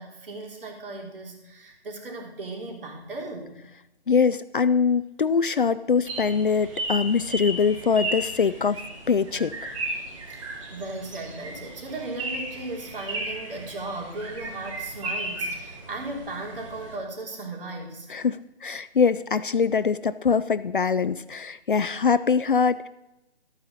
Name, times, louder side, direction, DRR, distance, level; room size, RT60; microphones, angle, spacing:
voice 1, 0.0-3.6 10.3-18.2, right 2 dB, 55° right, 0 dB, 3.3 m, -36 dB
voice 2, 4.1-8.8 9.1-9.7 18.1-22.9, left 5 dB, 50° left, 15 dB, 0.4 m, -23 dB
sound 1, 6.1-17.0, right 1 dB, 30° right, 2.0 m, -35 dB
13.0 x 8.8 x 4.1 m, 0.93 s
hypercardioid pair, 170°, 33 cm